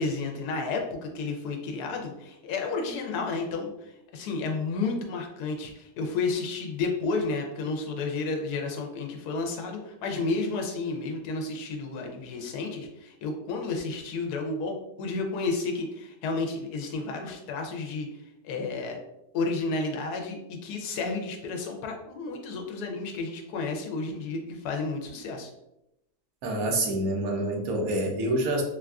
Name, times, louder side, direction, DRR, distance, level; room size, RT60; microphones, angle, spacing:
voice 1, 0.0-18.1 18.4-19.0 19.3-25.5, left 3 dB, 75° left, 2 dB, 1.1 m, -31 dB
voice 2, 26.4-28.6, right 1 dB, 70° right, 2 dB, 1.1 m, -27 dB
3.8 x 2.4 x 2.3 m, 0.85 s
omnidirectional pair, 1.7 m